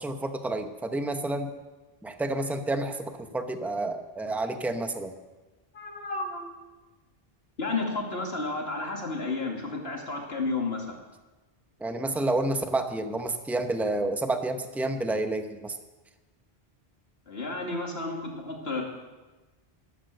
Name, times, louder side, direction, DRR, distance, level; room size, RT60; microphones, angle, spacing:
voice 1, 0.0-1.5 2.0-5.1 11.8-15.8, right 2 dB, ahead, 7 dB, 0.8 m, -29 dB
voice 2, 5.7-6.5 7.6-10.8 17.3-18.8, left 3 dB, 80° left, 0 dB, 2.7 m, -32 dB
13.5 x 12.5 x 6.6 m, 1.2 s
omnidirectional pair, 1.0 m